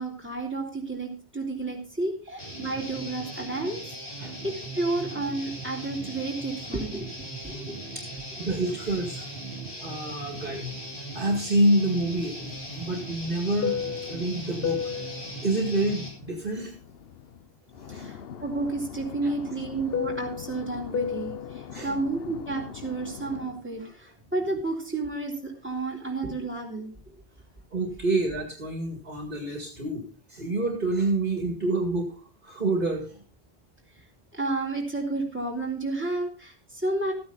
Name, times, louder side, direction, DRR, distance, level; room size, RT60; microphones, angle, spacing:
voice 1, 0.0-3.8 4.4-7.1 7.4-7.8 17.9-27.2 34.3-37.1, right 2 dB, 10° right, -1 dB, 3.4 m, -31 dB
Guitar, 2.4-16.1, right 2 dB, 85° left, 5.1 m, -39 dB
voice 2, 8.4-9.3 9.8-10.8 11.1-13.8 14.0-14.8 15.4-16.7 17.8-18.1 19.2-19.3 21.7-21.9 27.7-30.0 30.3-32.1 32.4-33.2, right 2 dB, 50° right, 2 dB, 2.4 m, -27 dB
Fixed-wing aircraft airplane, 12.0-17.4 17.7-23.6, left 8 dB, 65° left, 0.9 m, -35 dB
14.5 x 9.4 x 4.0 m, 0.36 s
omnidirectional pair, 1.1 m